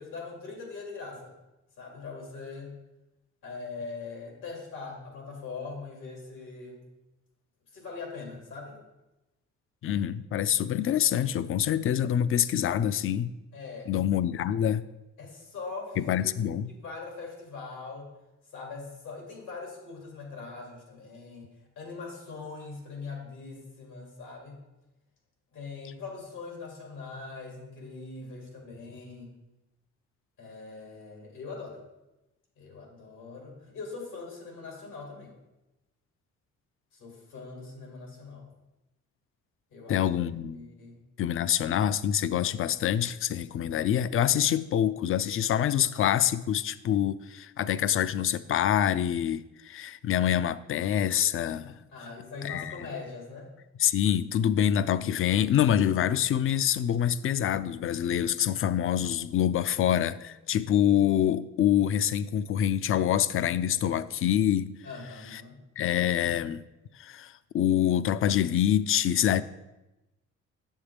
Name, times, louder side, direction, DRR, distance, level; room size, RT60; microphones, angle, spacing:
voice 1, 0.0-1.3 1.8-2.7 3.4-6.8 7.7-8.8 13.5-13.9 15.2-16.0 16.5-18.1 18.5-21.5 21.8-24.6 25.5-29.3 30.4-31.8 32.6-35.3 36.9-38.5 39.7-40.1 40.5-41.0 51.9-53.5 64.8-65.6, left 4 dB, 85° left, 2.5 m, -41 dB
voice 2, 9.8-13.3 13.9-14.8 16.0-16.7 39.9-40.6 41.2-51.7 52.4-52.7 53.8-64.8 65.3-65.4 65.8-66.6 66.9-69.4, left 10 dB, 45° left, 0.4 m, -26 dB
7.3 x 7.2 x 3.4 m
cardioid pair, 90°, 30 cm